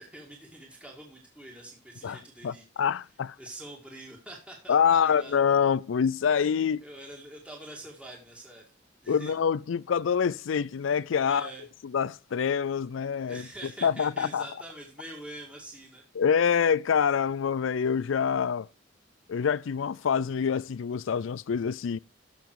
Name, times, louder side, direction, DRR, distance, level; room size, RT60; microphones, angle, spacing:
voice 1, 0.0-2.7 3.4-5.3 6.8-8.6 9.0-9.3 11.2-11.6 13.3-16.0, right 1 dB, 5° right, 2.1 m, -45 dB
voice 2, 2.4-3.4 4.7-6.8 9.1-11.5 11.9-13.4 13.8-14.5 16.2-18.7 19.3-22.0, left 7 dB, 90° left, 0.4 m, -26 dB
14.0 x 6.0 x 4.7 m
head